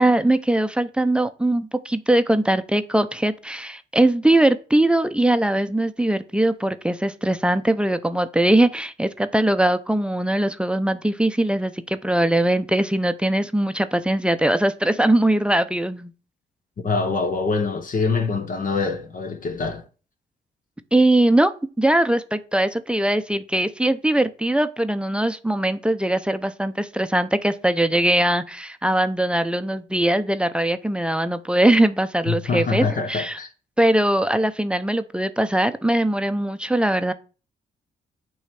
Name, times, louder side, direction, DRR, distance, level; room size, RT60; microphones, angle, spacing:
voice 1, 0.0-16.1 20.9-21.5 21.8-33.4 33.8-37.1, right 1 dB, 5° right, 0.6 m, -21 dB
voice 2, 16.8-19.8 32.3-33.5, left 4 dB, 50° left, 1.0 m, -24 dB
8.0 x 3.1 x 5.9 m
cardioid pair, 70°, 17 cm